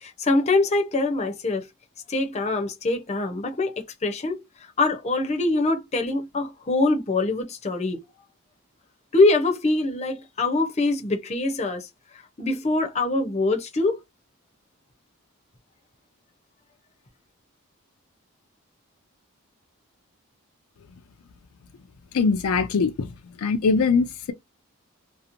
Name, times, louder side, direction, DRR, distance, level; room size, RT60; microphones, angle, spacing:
voice 1, 0.0-1.7 2.1-4.4 4.8-8.0 9.1-11.9 12.4-14.0, left 2 dB, 30° left, 0.6 m, -24 dB
voice 2, 22.1-23.1 23.4-24.3, left 5 dB, 75° left, 0.4 m, -22 dB
2.9 x 2.0 x 2.5 m
head